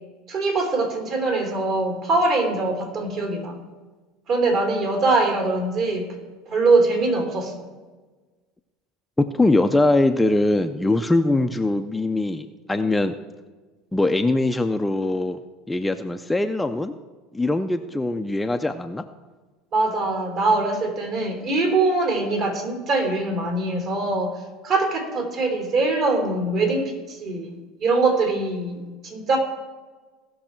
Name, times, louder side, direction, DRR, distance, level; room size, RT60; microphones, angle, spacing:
voice 1, 0.3-3.6 4.3-6.1 6.5-7.5 19.7-24.3 24.6-27.5 27.8-29.4, right 3 dB, 50° right, 3 dB, 3.3 m, -22 dB
voice 2, 9.2-13.2 13.9-15.4 15.7-17.0 17.3-19.0, left 2 dB, 5° left, 7 dB, 0.5 m, -22 dB
17.0 x 6.2 x 4.5 m, 1.3 s
supercardioid pair, 120°, 0 cm